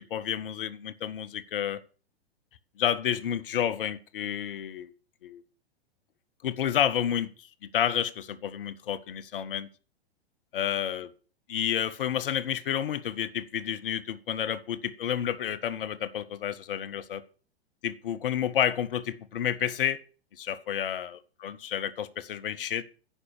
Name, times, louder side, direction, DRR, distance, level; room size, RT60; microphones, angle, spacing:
voice 1, 0.0-1.8 2.8-4.9 5.2-5.4 6.4-7.5 7.7-9.7 10.5-11.1 11.5-17.2 17.8-20.0 20.4-22.8, left 9 dB, 60° left, 0.9 m, -30 dB
9.8 x 5.4 x 6.8 m
figure-of-eight pair, 100°, 31 cm